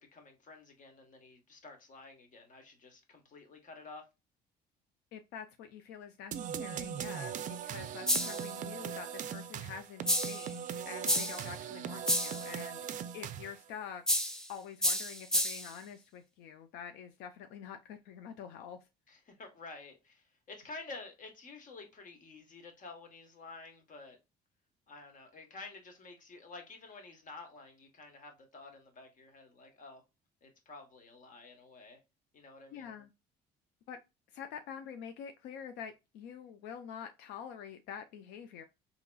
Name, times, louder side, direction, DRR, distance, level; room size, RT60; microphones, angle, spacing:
voice 1, 0.0-4.1 19.1-24.2 24.9-30.0 30.4-32.0 32.3-32.9, left 3 dB, 50° left, 1.2 m, -50 dB
voice 2, 5.1-12.8 13.1-14.0 14.5-18.8 32.7-33.1 33.9-34.0 34.3-38.6, left 8 dB, 85° left, 0.4 m, -46 dB
sound 1, 6.3-13.7, right 8 dB, 50° right, 0.4 m, -40 dB
sound 2, 8.1-8.5 10.1-10.5 11.1-11.5 12.1-12.5 14.1-14.5 14.8-15.7, equal, 5° left, 0.5 m, -30 dB
4.0 x 2.9 x 2.2 m
cardioid pair, 110°, 17 cm